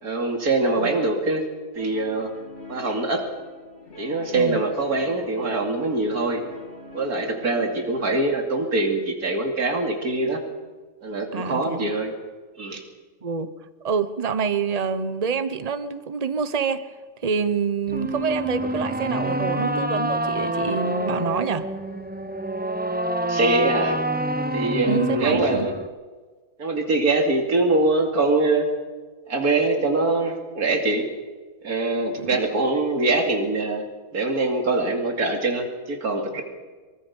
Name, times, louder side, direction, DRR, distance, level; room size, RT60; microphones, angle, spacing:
voice 1, 0.0-1.4 1.7-2.3 2.7-3.2 4.0-6.4 6.9-10.4 11.0-12.1 12.6-12.8 23.3-24.0 24.5-25.7 26.6-28.6 29.3-31.0 31.6-33.8 34.1-36.4, right 2 dB, 80° right, 3 dB, 3.1 m, -23 dB
Guitar, 1.7-8.3, left 3 dB, 50° left, 3.0 m, -43 dB
voice 2, 11.3-11.9 13.2-13.5 13.8-16.8 17.2-21.7 24.9-25.7 32.1-32.4, right 5 dB, 30° right, 11 dB, 1.1 m, -27 dB
sound 1, 17.9-25.9, right 1 dB, 10° right, 0.5 m, -27 dB
24.5 x 23.5 x 5.5 m, 1.4 s
omnidirectional pair, 1.6 m